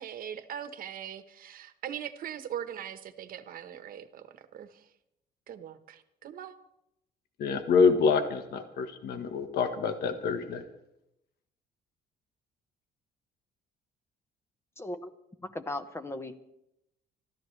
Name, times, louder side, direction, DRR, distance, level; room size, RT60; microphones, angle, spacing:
voice 1, 0.0-4.9 5.5-6.6, right 9 dB, 55° right, 10 dB, 1.3 m, -41 dB
voice 2, 7.4-10.6, left 5 dB, 70° left, 7 dB, 1.5 m, -26 dB
voice 3, 14.8-15.1 15.4-16.4, left 1 dB, 15° left, 9 dB, 1.2 m, -37 dB
26.0 x 13.5 x 3.3 m, 0.85 s
cardioid pair, 110°, 17 cm